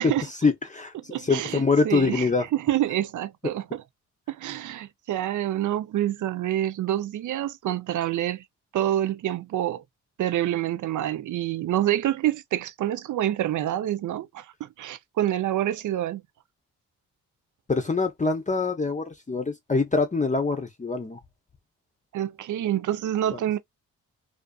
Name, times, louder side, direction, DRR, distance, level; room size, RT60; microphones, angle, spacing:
voice 1, 0.4-2.4 17.7-21.2 23.3-23.4, left 4 dB, 20° left, 0.7 m, -24 dB
voice 2, 1.1-3.8 4.3-8.4 8.7-9.8 10.2-16.2 22.1-23.6, right 12 dB, 60° right, 0.5 m, -27 dB
2.5 x 2.4 x 2.3 m
supercardioid pair, 60°, 34 cm